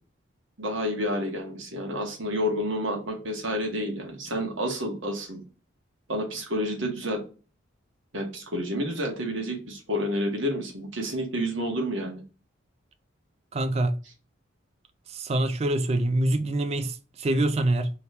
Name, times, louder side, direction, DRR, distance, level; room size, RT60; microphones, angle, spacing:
voice 1, 0.6-5.4 6.1-7.2 8.1-12.2, equal, 70° right, 1.2 m, -29 dB
voice 2, 13.5-14.0 15.1-17.9, right 1 dB, 30° right, 0.3 m, -25 dB
3.0 x 2.8 x 3.2 m
head